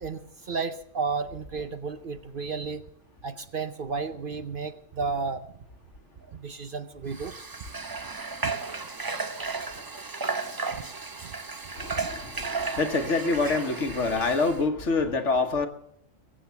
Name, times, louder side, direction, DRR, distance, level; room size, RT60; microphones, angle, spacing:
voice 1, 0.0-2.8 3.2-5.4 6.3-7.3 8.4-8.5 10.7-10.8 11.2-11.3 11.9-12.1, right 4 dB, 50° right, 10 dB, 0.8 m, -33 dB
Water / Water tap faucet, 7.1-14.6, right 4 dB, 25° right, 0.5 m, -34 dB
voice 2, 11.8-15.7, left 3 dB, 65° left, 8 dB, 1.7 m, -26 dB
22.5 x 8.0 x 7.0 m, 0.74 s
omnidirectional pair, 1.3 m